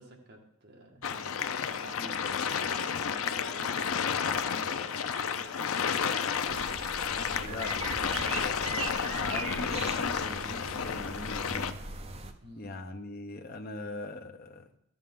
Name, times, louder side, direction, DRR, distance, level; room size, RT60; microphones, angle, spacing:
voice 1, 0.0-6.7 7.3-8.6 12.4-12.7, right 1 dB, 50° right, -1 dB, 1.7 m, -51 dB
sound 1, 1.0-11.7, left 7 dB, 75° left, 0.5 m, -31 dB
sound 2, 6.5-12.3, right 3 dB, 30° right, 0.6 m, -39 dB
voice 2, 7.4-8.6 9.2-11.7 12.6-14.7, left 3 dB, 45° left, 5 dB, 0.8 m, -41 dB
12.5 x 7.3 x 3.7 m, 0.79 s
head